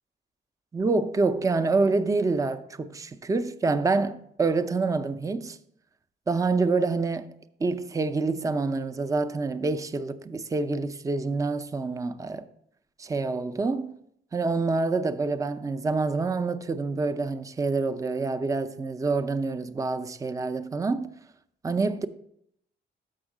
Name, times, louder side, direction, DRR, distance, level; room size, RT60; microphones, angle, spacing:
voice 1, 0.7-5.6 6.3-7.3 7.6-12.5 13.0-13.9 14.3-21.1 21.6-22.1, right 3 dB, 15° right, 0.4 m, -27 dB
6.4 x 6.2 x 4.7 m
cardioid pair, 90°, 20 cm